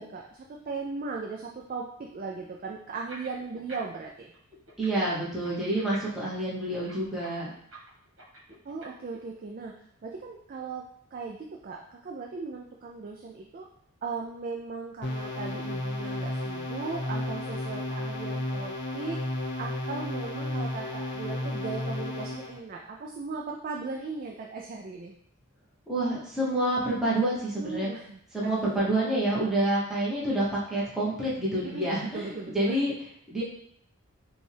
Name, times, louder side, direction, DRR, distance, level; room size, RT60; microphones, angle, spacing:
voice 1, 0.0-4.3 8.7-9.7 10.0-10.8 11.1-13.7 14.0-19.2 19.6-25.1 27.6-28.9 31.6-32.8, right 4 dB, 40° right, 0 dB, 0.3 m, -38 dB
sound 1, 3.1-4.1 4.3-9.2, right 1 dB, 60° right, 1.3 m, -47 dB
voice 2, 4.8-7.5 25.9-27.9 28.3-33.4, right 1 dB, ahead, -8 dB, 1.0 m, -28 dB
sound 2, 15.0-22.6, left 1 dB, 50° left, 0.7 m, -33 dB
5.1 x 2.3 x 3.4 m, 0.69 s
head